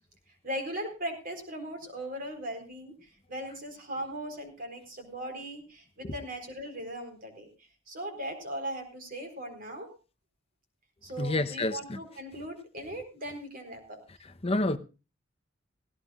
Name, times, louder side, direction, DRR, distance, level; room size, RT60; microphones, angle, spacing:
voice 1, 0.4-7.5 7.9-9.9 11.0-14.0, right 1 dB, 45° right, 4.1 m, -38 dB
voice 2, 11.2-12.0 14.4-14.8, left 2 dB, 30° left, 0.8 m, -28 dB
17.0 x 17.0 x 2.4 m
head